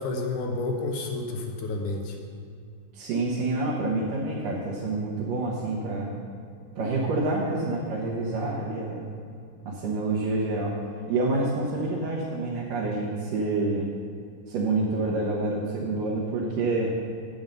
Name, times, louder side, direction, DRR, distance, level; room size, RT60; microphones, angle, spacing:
voice 1, 0.0-2.2, left 2 dB, 75° left, 2 dB, 2.3 m, -30 dB
voice 2, 2.9-6.1 6.8-9.1 9.7-10.8 11.1-13.9 14.5-16.9, right 2 dB, 75° right, -5 dB, 2.9 m, -27 dB
9.4 x 8.8 x 5.4 m, 2.3 s
omnidirectional pair, 3.8 m